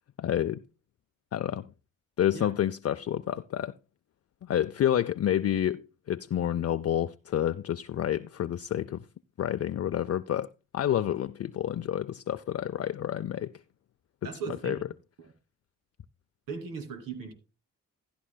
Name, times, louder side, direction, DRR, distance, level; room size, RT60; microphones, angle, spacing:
voice 1, 0.2-0.6 1.3-1.7 2.2-3.7 4.4-9.1 9.4-10.5 10.7-13.5 14.2-14.8, left 10 dB, 45° left, 0.5 m, -29 dB
voice 2, 14.2-14.8 15.2-15.3 16.5-17.3, right 5 dB, 85° right, 2.7 m, -38 dB
14.0 x 11.5 x 2.2 m
supercardioid pair, 55°, 33 cm